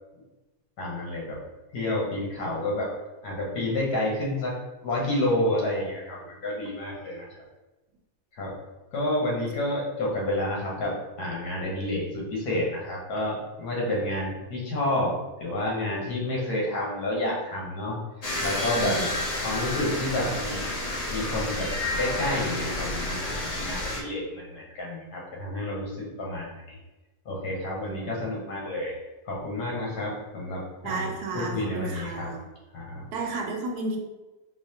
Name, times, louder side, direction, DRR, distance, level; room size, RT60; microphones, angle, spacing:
voice 1, 0.8-1.4 1.7-2.9 3.2-4.5 4.8-7.3 8.3-8.5 8.9-15.1 15.4-18.0 18.4-19.0 19.4-20.7 21.1-26.8 27.2-29.0 29.3-31.1 31.3-32.3 32.7-33.1, left 1 dB, 80° left, -3 dB, 1.5 m, -29 dB
sound 1, 18.2-24.0, left 1 dB, 60° left, 0.4 m, -30 dB
voice 2, 30.8-32.5 33.1-34.0, right 3 dB, 85° right, 2 dB, 1.2 m, -32 dB
4.0 x 2.8 x 2.7 m, 1.1 s
omnidirectional pair, 1.6 m